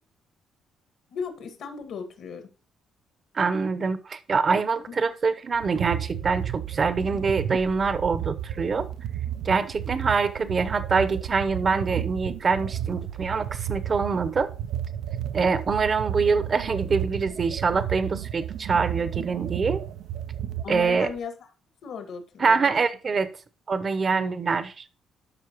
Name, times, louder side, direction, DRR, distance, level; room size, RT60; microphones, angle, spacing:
voice 1, 1.1-2.5 4.9-5.0 20.6-21.4 21.8-22.7 24.1-24.3, left 6 dB, 65° left, 1.8 m, -36 dB
voice 2, 3.3-8.9 9.4-14.5 15.3-19.8 20.7-21.1 22.4-23.3 23.7-24.8, right 5 dB, 35° right, 0.8 m, -25 dB
sound 1, 5.5-21.2, right 10 dB, 75° right, 0.5 m, -33 dB
12.0 x 5.6 x 3.0 m
cardioid pair, 115°, 0 cm